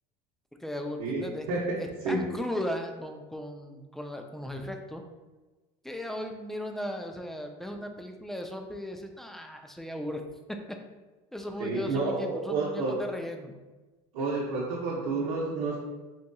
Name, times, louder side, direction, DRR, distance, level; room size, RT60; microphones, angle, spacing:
voice 1, 0.6-1.4 1.8-5.0 5.8-10.2 11.3-13.5, left 1 dB, ahead, 4 dB, 0.4 m, -37 dB
voice 2, 11.6-13.0 14.1-15.8, right 3 dB, 80° right, -6 dB, 0.8 m, -29 dB
4.1 x 2.6 x 2.2 m, 1.2 s
supercardioid pair, 95°, 17 cm